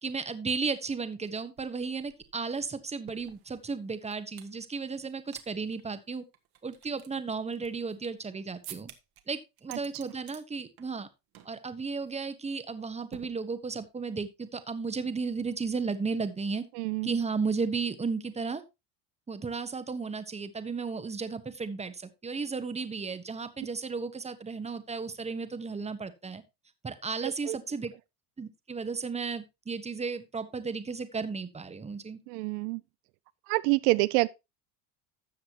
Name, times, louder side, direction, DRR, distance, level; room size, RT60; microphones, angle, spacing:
voice 1, 0.0-6.2 6.6-8.9 9.3-11.1 11.4-16.6 17.0-18.6 19.3-26.4 26.8-27.9 28.4-32.2, right 4 dB, 15° right, 1.1 m, -34 dB
sound 1, 1.2-1.3 1.6-4.6 5.0-5.5 5.7-5.8 6.3-8.3 8.6-9.2 9.6-10.4 10.8-11.1 11.3-11.6 11.9-12.1 13.1-13.9, right 12 dB, 55° right, 1.6 m, -50 dB
voice 2, 16.8-17.1 27.2-27.6 32.3-32.8 33.5-34.3, right 23 dB, 80° right, 0.6 m, -27 dB
13.0 x 7.3 x 3.0 m
supercardioid pair, 105°, 45 cm